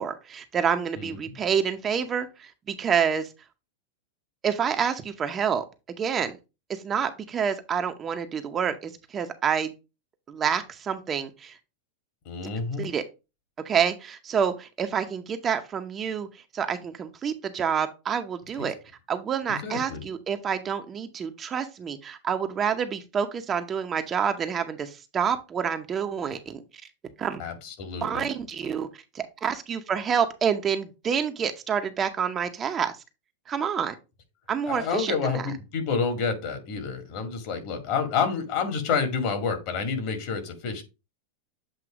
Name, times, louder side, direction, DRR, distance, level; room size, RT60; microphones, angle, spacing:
voice 1, 0.0-3.3 4.4-5.6 6.0-6.4 6.7-9.7 10.3-11.5 12.8-13.0 13.6-16.3 16.5-18.7 19.1-26.6 27.2-27.4 28.0-28.9 29.1-32.9 33.5-33.9 34.5-35.4, right 7 dB, 25° right, 7 dB, 0.7 m, -28 dB
voice 2, 1.0-1.4 12.3-12.8 19.5-20.0 27.4-28.2 34.7-40.8, left 5 dB, 50° left, 6 dB, 1.9 m, -29 dB
7.8 x 2.7 x 4.9 m, 0.28 s
supercardioid pair, 135°, 0 cm